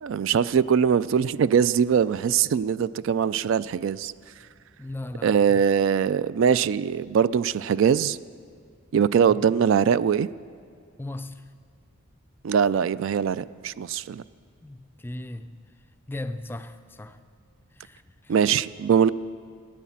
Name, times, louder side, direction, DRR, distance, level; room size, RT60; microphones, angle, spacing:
voice 1, 0.0-4.1 5.2-8.2 8.9-10.3 12.4-14.2 18.3-19.1, right 7 dB, 65° right, 0.3 m, -22 dB
voice 2, 4.8-5.6 11.0-11.5 14.6-15.7 16.1-17.2 17.7-18.3, left 1 dB, 10° left, 0.3 m, -37 dB
16.5 x 9.2 x 7.2 m
head